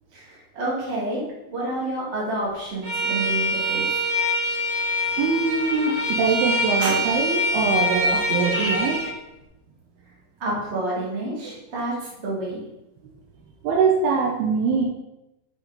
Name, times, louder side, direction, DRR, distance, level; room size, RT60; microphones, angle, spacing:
voice 1, 0.1-1.2 1.5-3.9 6.8-7.0 10.4-12.6, right 2 dB, 25° right, -5 dB, 1.5 m, -29 dB
Bowed string instrument, 2.8-9.1, equal, 40° right, 1.5 m, -24 dB
voice 2, 5.2-9.1 13.6-14.9, right 5 dB, 75° right, 0 dB, 2.5 m, -23 dB
6.3 x 6.2 x 4.0 m, 0.89 s
omnidirectional pair, 4.9 m